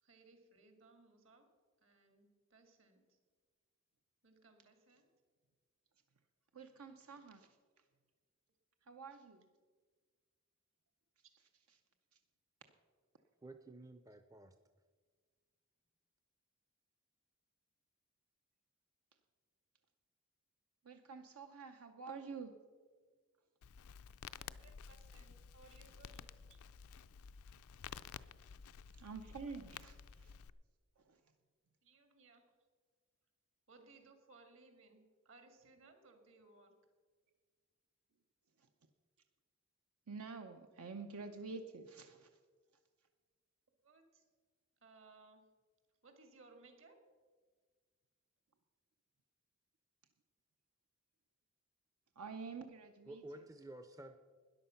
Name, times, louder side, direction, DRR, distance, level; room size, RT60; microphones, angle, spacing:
voice 1, 0.0-1.5 1.8-3.2 4.2-5.1 24.4-26.6 31.8-32.4 33.7-36.8 43.8-44.2 44.8-45.4 46.0-47.0, right 3 dB, 60° right, 6 dB, 2.1 m, -64 dB
voice 2, 6.5-7.5 8.9-9.4 20.8-22.5 29.0-30.3 31.0-31.2 40.1-42.3 52.2-53.2, right 4 dB, 80° right, 6 dB, 0.7 m, -48 dB
voice 3, 13.4-14.5 53.1-54.2, right 1 dB, 15° right, 9 dB, 0.4 m, -52 dB
Crackle, 23.6-30.5, left 7 dB, 80° left, 0.4 m, -53 dB
13.0 x 10.5 x 5.8 m, 1.5 s
head